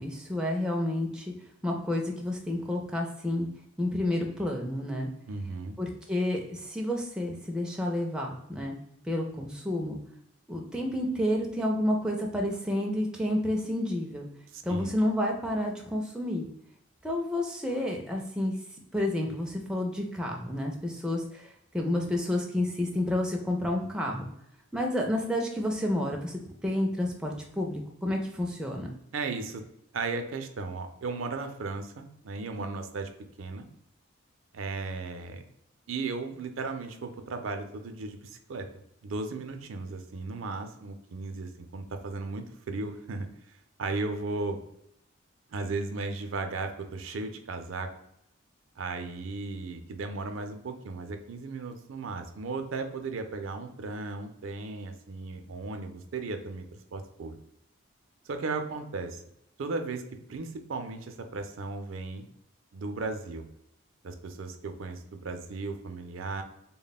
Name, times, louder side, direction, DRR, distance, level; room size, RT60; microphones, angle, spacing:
voice 1, 0.0-1.3 1.6-3.5 3.8-5.1 5.8-8.7 9.1-10.0 10.5-14.3 14.6-16.5 17.0-18.5 18.9-21.5 21.7-24.3 24.7-28.9, left 1 dB, 5° right, 0 dB, 0.3 m, -30 dB
voice 2, 5.3-5.7 14.5-14.9 29.1-29.6 29.9-33.1 33.4-33.7 34.5-35.4 35.9-38.7 39.0-44.6 45.5-47.9 48.8-56.7 56.9-57.4 58.3-59.2 59.6-60.0 60.3-62.2 62.7-63.4 64.0-66.4, right 3 dB, 70° right, 6 dB, 0.4 m, -36 dB
3.4 x 2.2 x 4.0 m, 0.77 s
head